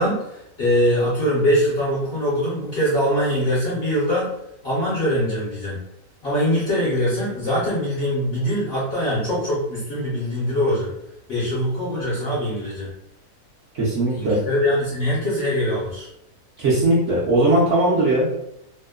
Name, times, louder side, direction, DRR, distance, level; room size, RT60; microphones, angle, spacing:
voice 1, 0.0-4.3 4.6-5.8 6.2-10.9 11.3-12.9 14.1-16.1, equal, 55° left, -7 dB, 0.7 m, -22 dB
voice 2, 13.7-14.4 16.6-18.3, right 1 dB, 60° right, -7 dB, 0.9 m, -19 dB
2.8 x 2.0 x 2.3 m, 0.80 s
omnidirectional pair, 1.6 m